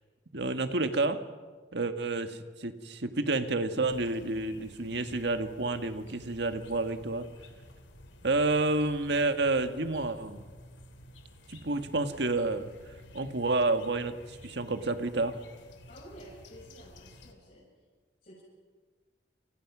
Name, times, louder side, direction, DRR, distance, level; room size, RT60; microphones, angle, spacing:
voice 1, 0.3-1.2 1.7-7.3 8.2-10.4 11.5-12.7 13.1-15.4, right 2 dB, 65° right, 8 dB, 1.7 m, -29 dB
sound 1, 3.8-17.3, left 1 dB, 85° left, 3.2 m, -52 dB
voice 2, 15.9-17.7 18.2-18.4, equal, 50° left, -6 dB, 7.7 m, -51 dB
30.0 x 29.0 x 6.1 m, 1.4 s
head